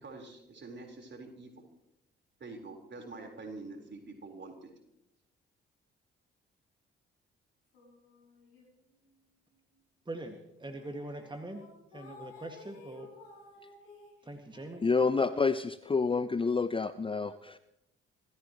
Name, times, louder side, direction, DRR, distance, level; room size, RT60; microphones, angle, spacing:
voice 1, 0.0-1.6 2.4-4.7, right 3 dB, 40° right, 3 dB, 4.4 m, -46 dB
sound 1, 7.7-9.1 9.5-9.7 10.3-10.4 10.6-15.4, left 3 dB, 80° left, 6.8 m, -55 dB
voice 2, 10.1-11.6 11.9-13.1 14.2-14.8, right 1 dB, 15° right, 5 dB, 2.0 m, -42 dB
voice 3, 14.8-17.6, left 4 dB, 20° left, 13 dB, 0.7 m, -28 dB
26.5 x 14.5 x 3.1 m, 0.84 s
figure-of-eight pair, 45°, 29 cm